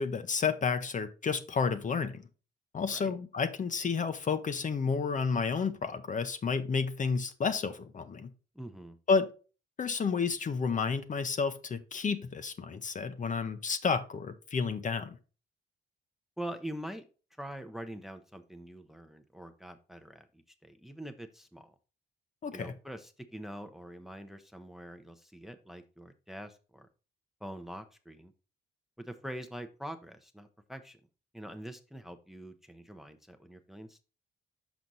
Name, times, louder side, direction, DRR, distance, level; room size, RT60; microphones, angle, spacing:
voice 1, 0.0-2.2 2.7-8.3 9.1-9.3 9.8-15.2 22.4-22.7, left 5 dB, 40° left, 0.8 m, -31 dB
voice 2, 8.5-9.0 16.4-17.1 17.4-20.3 20.6-21.7 22.5-26.9 27.4-28.3 29.0-31.0 31.3-34.0, right 1 dB, ahead, 0.7 m, -44 dB
6.2 x 5.0 x 4.0 m
cardioid pair, 90°, 20 cm